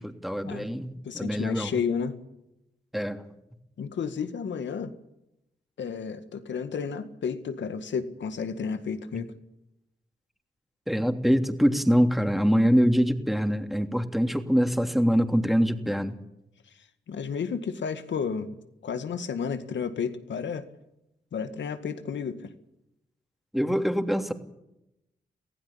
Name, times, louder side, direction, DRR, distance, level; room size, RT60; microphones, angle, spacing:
voice 1, 0.0-1.7 2.9-3.2 10.9-16.1 23.5-24.3, equal, ahead, 6 dB, 3.1 m, -24 dB
voice 2, 1.0-2.2 3.8-4.9 5.8-9.3 17.1-18.6 18.8-20.6 21.3-22.5, left 6 dB, 80° left, 10 dB, 2.0 m, -32 dB
24.0 x 16.0 x 8.7 m, 0.87 s
supercardioid pair, 45°, 19 cm